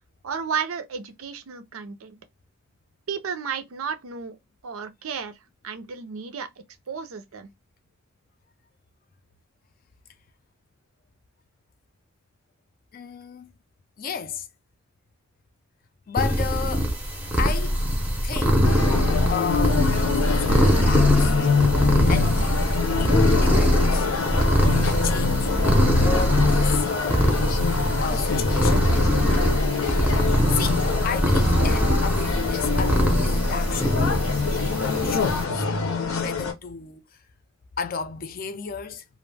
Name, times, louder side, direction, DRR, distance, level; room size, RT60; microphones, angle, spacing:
voice 1, 0.2-2.2 3.1-4.4 4.6-5.3 5.6-7.5, right 6 dB, 85° right, 0.5 m, -33 dB
voice 2, 12.9-13.5 14.0-14.5 16.1-16.9 17.4-17.8 18.2-18.8 19.3-21.4 21.9-22.6 23.0-24.1 24.8-27.2 27.6-28.8 29.9-30.2 30.5-33.9 34.6-35.7 36.2-37.0 37.8-39.0, left 6 dB, 45° left, 0.4 m, -33 dB
sound 1, 16.2-35.4, equal, 5° right, 0.5 m, -22 dB
sound 2, 18.6-36.5, left 5 dB, 85° left, 0.7 m, -25 dB
2.4 x 2.0 x 3.2 m
head